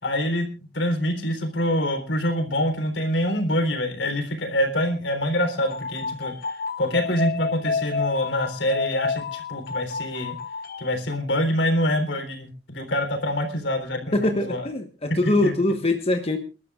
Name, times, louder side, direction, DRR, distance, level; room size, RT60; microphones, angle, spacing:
voice 1, 0.0-0.5 0.7-10.4 10.8-14.7 15.2-15.5, equal, 80° left, 7 dB, 3.7 m, -25 dB
sound 1, 5.6-11.0, left 4 dB, 55° left, 1.1 m, -30 dB
voice 2, 14.1-16.4, left 2 dB, 35° left, 5 dB, 1.2 m, -23 dB
29.0 x 12.0 x 2.4 m, 0.31 s
head